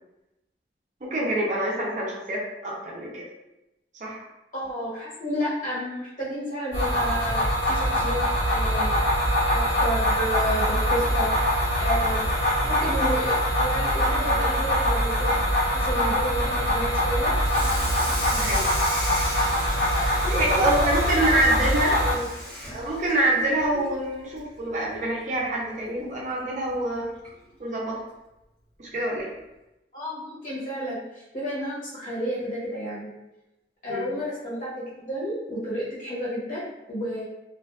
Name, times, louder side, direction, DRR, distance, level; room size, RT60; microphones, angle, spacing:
voice 1, 1.0-3.3 4.0-4.2 18.3-18.7 20.3-22.0 22.7-27.1 27.6-28.0 28.8-29.3 33.9-34.1, right 1 dB, 40° right, -4 dB, 0.5 m, -26 dB
voice 2, 4.5-8.2 8.5-8.9 9.5-11.3 11.8-12.3 12.6-15.4 15.7-17.3 19.9-20.9 22.0-22.3 29.9-33.1 33.8-37.2, equal, 45° left, -8 dB, 1.0 m, -31 dB
sound 1, 6.7-22.1, equal, 70° left, 1.3 m, -23 dB
Water tap faucet / Sink (filling or washing), 17.3-24.0 24.4-24.6 25.0-25.1 25.5-25.6 26.7-26.8 27.2-27.5, equal, 5° left, 0.7 m, -36 dB
2.5 x 2.2 x 2.3 m, 0.96 s
head